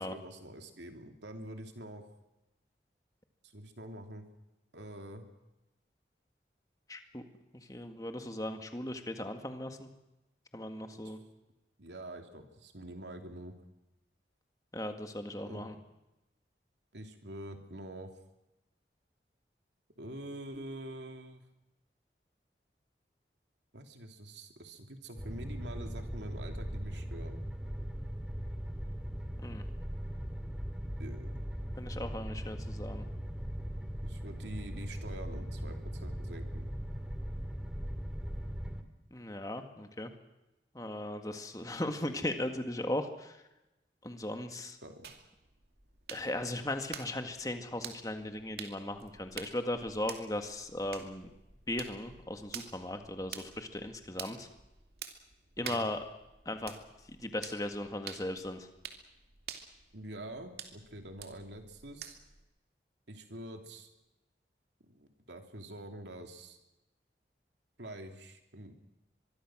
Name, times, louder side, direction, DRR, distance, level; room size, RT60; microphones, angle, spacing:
voice 1, 0.0-2.1 3.4-4.3 4.7-5.2 10.9-11.2 11.8-13.5 15.4-15.8 16.9-18.1 20.0-21.4 23.7-27.4 31.0-31.5 34.0-36.7 44.8-45.1 55.6-55.9 59.9-62.2 63.1-63.9 64.8-66.6 67.8-68.7, right 1 dB, 85° right, 5 dB, 3.1 m, -46 dB
voice 2, 6.9-7.2 7.5-9.9 10.5-11.2 14.7-15.7 29.4-29.6 31.8-33.0 39.1-40.1 40.7-43.4 44.0-44.8 46.1-51.3 51.7-54.5 55.6-56.0 56.5-56.7 57.2-58.7, left 1 dB, 20° left, 6 dB, 1.9 m, -37 dB
sound 1, 25.2-38.8, equal, 5° right, 2.1 m, -39 dB
sound 2, 45.0-62.4, right 7 dB, 65° right, 2.5 m, -49 dB
24.5 x 22.5 x 6.3 m, 0.97 s
head